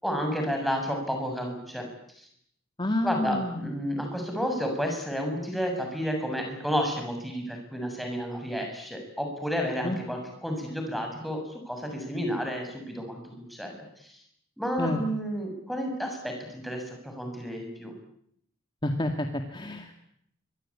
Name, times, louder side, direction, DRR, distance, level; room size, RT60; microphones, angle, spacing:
voice 1, 0.0-1.9 2.2-2.3 3.0-13.8 14.0-14.1 14.6-17.9, equal, ahead, 2 dB, 7.2 m, -31 dB
voice 2, 2.8-3.7 9.8-10.0 14.8-15.0 18.8-19.9, left 1 dB, 25° left, 5 dB, 2.1 m, -29 dB
26.5 x 24.0 x 8.7 m, 0.70 s
head